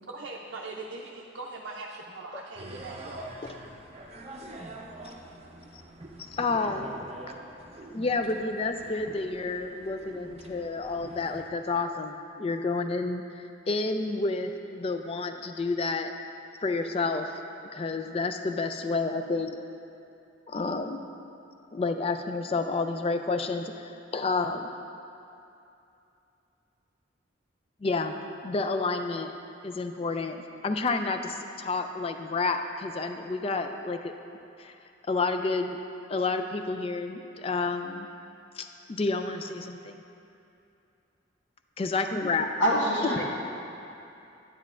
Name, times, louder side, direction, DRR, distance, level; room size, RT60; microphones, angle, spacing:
voice 1, 0.0-3.3, right 3 dB, 75° right, -2 dB, 0.5 m, -41 dB
sound 1, 2.6-11.5, right 1 dB, 35° right, 0.6 m, -45 dB
voice 2, 6.3-7.0 7.9-13.2 13.7-16.1 16.6-17.4 17.7-19.6 20.5-21.0 21.7-24.7 27.8-28.2 28.4-29.3 29.6-34.1 34.6-34.7 35.1-35.8 36.1-38.1 38.6-40.0 41.8-42.5 43.0-43.2, left 3 dB, 30° left, 7 dB, 0.3 m, -30 dB
voice 3, 42.6-43.2, equal, 75° left, -5 dB, 1.6 m, -25 dB
10.0 x 9.5 x 2.5 m, 2.7 s
head